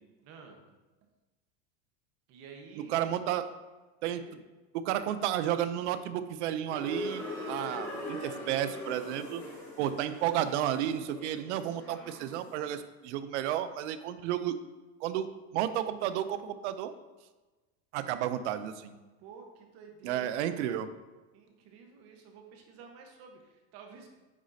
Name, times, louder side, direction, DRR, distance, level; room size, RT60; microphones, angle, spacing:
voice 1, 0.2-0.6 2.3-3.0 4.1-4.3 4.9-5.0 19.2-20.8 21.3-24.1, right 5 dB, 45° right, 3 dB, 1.3 m, -51 dB
voice 2, 2.8-3.5 4.0-4.2 4.8-9.4 9.8-14.5 15.0-15.3 15.5-16.9 17.9-19.0 20.0-20.9, right 11 dB, 85° right, 11 dB, 0.7 m, -32 dB
sound 1, 6.7-12.6, left 1 dB, 10° left, 1.7 m, -41 dB
9.1 x 6.3 x 2.8 m, 1.2 s
cardioid pair, 165°, 34 cm